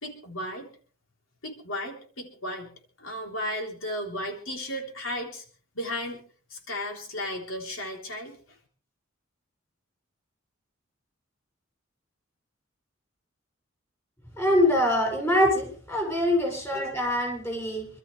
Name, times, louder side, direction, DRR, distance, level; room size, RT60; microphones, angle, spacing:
voice 1, 0.0-0.7 1.4-2.7 3.0-5.5 5.8-6.2 6.5-8.4, left 1 dB, 90° left, 2 dB, 3.6 m, -34 dB
voice 2, 14.4-17.9, left 1 dB, 15° left, 1 dB, 6.8 m, -24 dB
27.0 x 13.0 x 3.3 m, 0.41 s
head